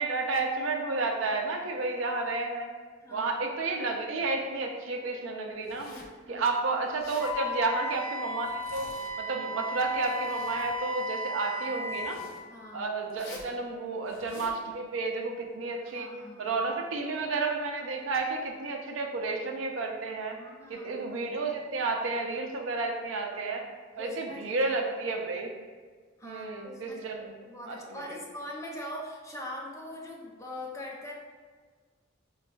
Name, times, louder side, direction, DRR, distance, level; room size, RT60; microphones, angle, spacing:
voice 1, 0.0-2.7 3.1-5.9 6.3-8.9 9.2-12.3 12.7-16.1 16.4-20.4 20.7-23.7 24.0-25.5 26.2-27.3 27.6-28.2, right 3 dB, 85° right, 2 dB, 0.5 m, -31 dB
Zipper (clothing), 5.6-6.2 6.9-7.4 8.4-9.3 9.7-10.8 11.8-12.4 13.1-13.5 14.1-14.6, left 2 dB, 55° left, 0.6 m, -47 dB
Wind instrument woodwind instrument, 7.2-12.2, left 1 dB, 25° right, 1.2 m, -35 dB
voice 2, 12.5-12.9 15.8-16.6 20.4-20.9 24.0-24.7 26.2-27.0 27.4-31.1, left 1 dB, 15° left, -2 dB, 0.4 m, -42 dB
5.1 x 2.3 x 2.2 m, 1.5 s
head